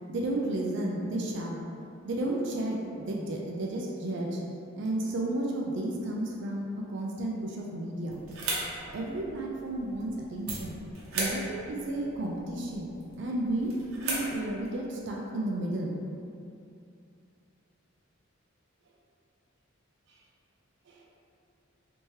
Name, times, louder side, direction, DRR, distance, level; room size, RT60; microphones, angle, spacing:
voice 1, 0.1-1.6 2.0-4.4 4.8-8.2 8.9-10.8 11.1-12.9 13.2-13.7 14.0-16.0 20.9-21.0, right 1 dB, 55° right, -1 dB, 0.4 m, -32 dB
sound 1, 8.0-14.8, right 2 dB, 75° right, 0.8 m, -38 dB
3.3 x 2.8 x 3.1 m, 2.6 s
head